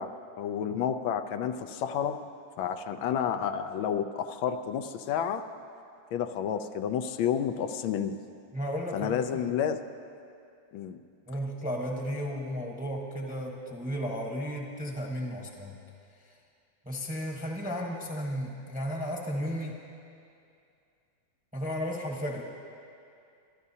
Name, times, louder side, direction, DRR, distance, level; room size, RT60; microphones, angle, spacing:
voice 1, 0.0-2.2 2.6-5.5 6.1-8.2 8.9-9.8 10.7-11.0, left 8 dB, 90° left, 8 dB, 1.4 m, -30 dB
voice 2, 8.5-9.6 11.3-15.8 16.2-16.4 16.8-19.8 21.5-22.4, equal, 5° right, 0 dB, 0.8 m, -34 dB
25.5 x 12.0 x 2.8 m, 2.5 s
omnidirectional pair, 2.1 m